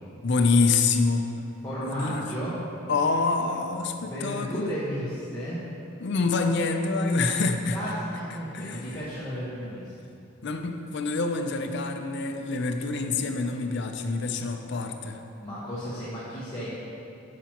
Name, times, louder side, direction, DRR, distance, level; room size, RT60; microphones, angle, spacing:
voice 1, 0.2-1.3 1.8-2.2 2.9-4.7 6.0-7.8 8.5-8.8 10.4-15.2, left 3 dB, 55° left, 6 dB, 0.5 m, -26 dB
voice 2, 1.6-2.6 4.0-5.6 7.7-9.9 15.4-16.7, equal, 15° left, -10 dB, 1.3 m, -34 dB
12.0 x 5.9 x 2.9 m, 2.7 s
head